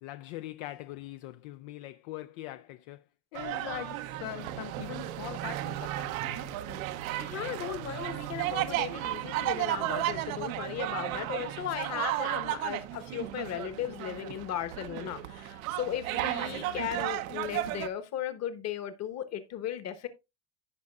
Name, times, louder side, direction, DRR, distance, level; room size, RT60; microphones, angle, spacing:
voice 1, 0.0-3.0 3.3-6.9 16.5-16.8, left 16 dB, 65° left, 0.5 m, -42 dB
sound 1, 3.3-17.9, right 14 dB, 85° right, 0.9 m, -34 dB
voice 2, 7.2-20.1, left 10 dB, 40° left, 1.2 m, -36 dB
15.5 x 5.3 x 2.4 m
supercardioid pair, 130°, 41 cm